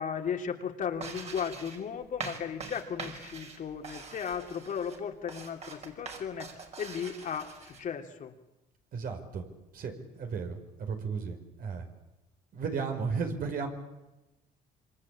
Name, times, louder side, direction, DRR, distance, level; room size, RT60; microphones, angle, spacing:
voice 1, 0.0-6.5 6.8-8.3, left 7 dB, 50° left, 4 dB, 3.1 m, -35 dB
sound 1, 0.9-7.8, right 4 dB, 40° right, 5.5 m, -44 dB
voice 2, 8.9-9.4 9.7-11.9 12.5-13.7, right 5 dB, 60° right, 5 dB, 5.5 m, -34 dB
27.0 x 25.0 x 8.7 m, 0.96 s
cardioid pair, 110°, 17 cm